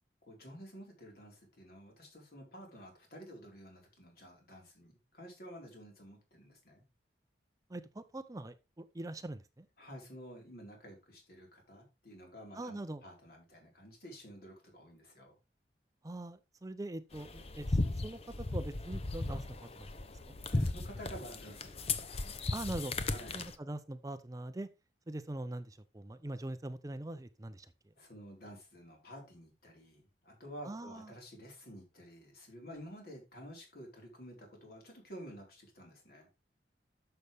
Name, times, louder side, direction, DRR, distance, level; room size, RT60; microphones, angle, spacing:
voice 1, 0.2-6.8 9.8-15.3 20.5-22.4 23.1-23.5 28.0-36.3, equal, 60° left, 4.5 m, -51 dB
voice 2, 7.7-9.7 12.5-13.0 16.0-18.2 18.5-19.9 20.3-20.4 22.5-22.9 23.3-24.7 25.1-27.7 30.6-31.1, right 1 dB, 20° right, 0.5 m, -42 dB
sound 1, 17.1-23.5, left 2 dB, 35° left, 0.8 m, -36 dB
11.0 x 6.8 x 3.5 m
head